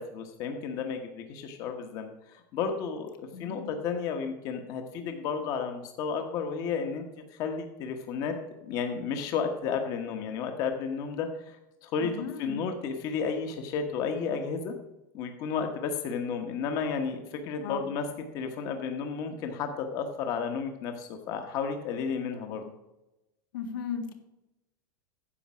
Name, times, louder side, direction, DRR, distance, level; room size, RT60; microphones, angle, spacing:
voice 1, 0.0-8.3 8.7-11.6 11.8-12.1 12.4-14.7 15.1-18.0 18.3-22.7, left 6 dB, 35° left, 5 dB, 1.1 m, -32 dB
voice 2, 3.3-3.7 12.0-12.6 17.6-17.9 23.5-24.1, left 7 dB, 80° left, 6 dB, 1.7 m, -36 dB
9.9 x 7.3 x 6.0 m, 0.93 s
supercardioid pair, 175°, 11 cm